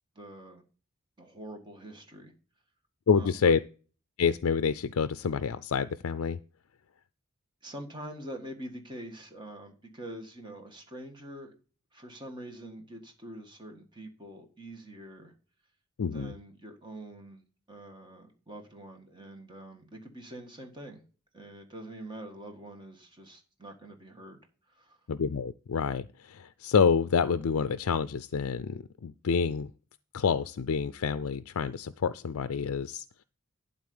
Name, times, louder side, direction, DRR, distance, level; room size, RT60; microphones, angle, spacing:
voice 1, 0.2-0.6 1.2-2.3 3.1-3.6 7.6-11.5 11.9-15.3 16.1-21.0 21.3-24.4 24.7-25.0, right 1 dB, 20° right, 3 dB, 1.6 m, -45 dB
voice 2, 3.1-3.6 4.2-6.4 16.0-16.3 25.1-29.7 30.1-33.0, left 6 dB, 75° left, 13 dB, 0.4 m, -28 dB
12.0 x 4.1 x 7.9 m, 0.37 s
head